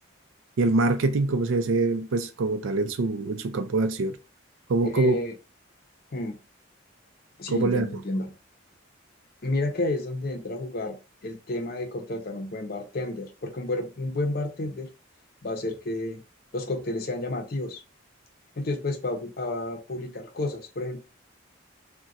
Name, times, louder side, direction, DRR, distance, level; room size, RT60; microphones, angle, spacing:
voice 1, 0.6-4.2 4.7-5.2 7.5-7.9, right 3 dB, 75° right, 0.4 m, -24 dB
voice 2, 4.9-5.3 6.1-6.4 7.4-8.3 9.4-11.0 11.2-14.9 15.4-16.2 16.5-17.8 18.6-21.0, left 2 dB, 45° left, 0.6 m, -31 dB
2.4 x 2.2 x 3.9 m
head